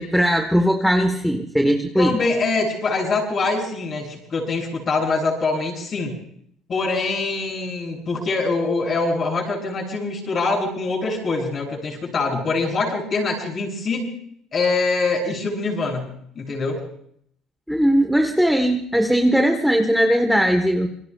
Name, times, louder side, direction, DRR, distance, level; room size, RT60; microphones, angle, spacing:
voice 1, 0.0-2.1 17.7-20.9, equal, ahead, 3 dB, 1.3 m, -19 dB
voice 2, 2.0-6.2 6.7-14.1 14.5-16.8, left 3 dB, 35° left, 0 dB, 7.3 m, -24 dB
27.5 x 22.0 x 2.4 m, 0.67 s
cardioid pair, 120°, 0 cm